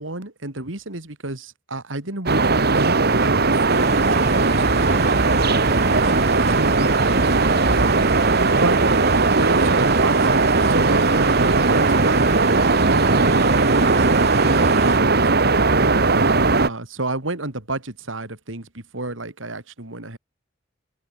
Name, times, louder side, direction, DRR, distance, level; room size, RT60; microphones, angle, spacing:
voice 1, 0.0-1.4 1.7-2.4 2.7-5.0 5.4-6.0 6.3-7.4 7.6-8.0 8.6-8.7 9.4-10.4 10.7-12.2 12.8-17.8 18.1-18.6 18.9-20.2, right 2 dB, 80° right, 3.3 m, -30 dB
sound 1, 2.3-16.7, right 3 dB, 55° right, 1.6 m, -18 dB
sound 2, 3.7-15.0, right 3 dB, 35° right, 4.5 m, -30 dB
head